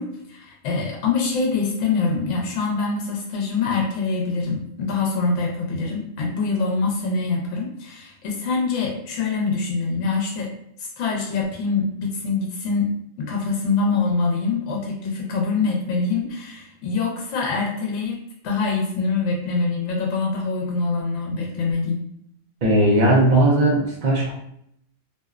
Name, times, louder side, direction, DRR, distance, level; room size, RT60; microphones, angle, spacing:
voice 1, 0.0-10.5 10.8-12.9 13.2-18.2 18.4-22.0, left 4 dB, 75° left, -1 dB, 0.9 m, -24 dB
voice 2, 22.6-24.3, right 1 dB, 55° right, -3 dB, 0.5 m, -17 dB
2.6 x 2.0 x 2.3 m, 0.73 s
omnidirectional pair, 1.3 m